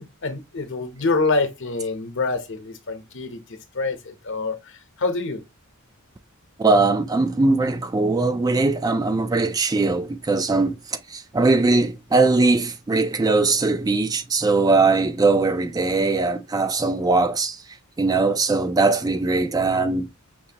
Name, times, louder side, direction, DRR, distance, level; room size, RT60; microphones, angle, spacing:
voice 1, 0.2-3.4 3.7-5.4, left 3 dB, 60° left, 0.9 m, -26 dB
voice 2, 6.6-17.6 18.0-20.1, right 3 dB, 20° right, 0.3 m, -20 dB
5.9 x 2.7 x 2.8 m
head